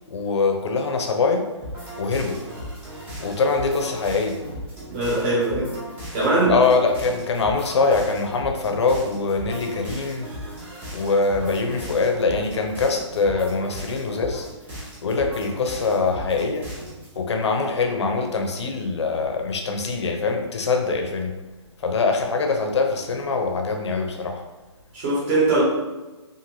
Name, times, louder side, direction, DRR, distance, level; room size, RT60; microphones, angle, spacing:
voice 1, 0.1-1.5 2.0-2.4 3.2-4.4 6.5-10.3 10.9-14.5 15.0-16.7 17.2-21.3 21.8-24.4, left 4 dB, 65° left, 3 dB, 0.6 m, -23 dB
sound 1, 1.6-17.2, equal, 10° right, 0.6 m, -37 dB
voice 2, 4.9-5.7 6.1-6.6 10.6-10.7 24.9-25.6, right 2 dB, 25° right, -6 dB, 1.0 m, -21 dB
2.6 x 2.5 x 3.0 m, 1.1 s
hypercardioid pair, 160°, 15 cm